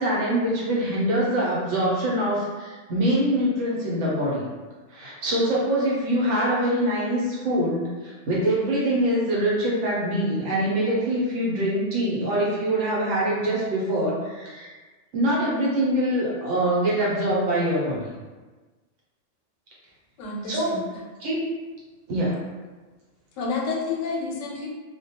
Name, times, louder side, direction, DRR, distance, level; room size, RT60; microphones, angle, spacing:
voice 1, 0.0-4.5 4.9-14.7 15.1-18.1 20.5-20.7 21.2-21.4 22.1-22.3, right 1 dB, 75° right, -6 dB, 1.1 m, -24 dB
voice 2, 20.2-20.9 23.4-24.7, left 4 dB, 90° left, -1 dB, 0.9 m, -29 dB
2.4 x 2.1 x 2.7 m, 1.3 s
omnidirectional pair, 1.3 m